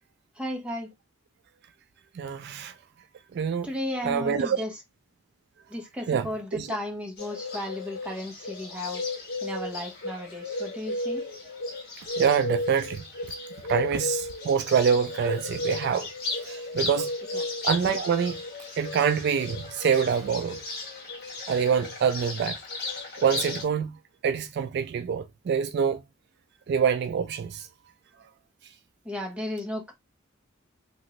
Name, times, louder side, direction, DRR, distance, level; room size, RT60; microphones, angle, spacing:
voice 1, 0.4-0.9 3.6-4.7 5.7-9.0 9.4-11.2 17.3-17.4 29.0-29.9, left 1 dB, 5° right, 0.8 m, -34 dB
voice 2, 2.1-2.7 3.3-3.7 4.0-4.6 6.1-6.8 12.2-13.0 13.7-17.1 17.6-18.4 18.8-20.6 21.5-22.6 23.2-24.0 24.2-26.0 26.7-27.7, right 7 dB, 55° right, 0.3 m, -26 dB
Bird, 7.2-23.6, left 2 dB, 55° left, 1.2 m, -34 dB
2.9 x 2.5 x 3.0 m
head